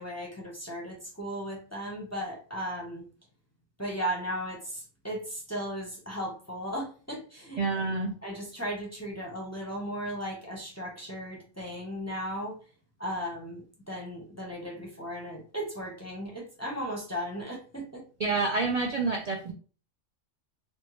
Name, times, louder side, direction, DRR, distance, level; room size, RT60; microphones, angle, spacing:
voice 1, 0.0-3.1 3.8-7.6 8.2-12.6 13.0-18.0, equal, 15° left, -2 dB, 0.6 m, -36 dB
voice 2, 7.6-8.1 18.2-19.5, right 3 dB, 65° right, 1 dB, 0.4 m, -28 dB
3.5 x 2.1 x 3.0 m, 0.38 s
omnidirectional pair, 1.3 m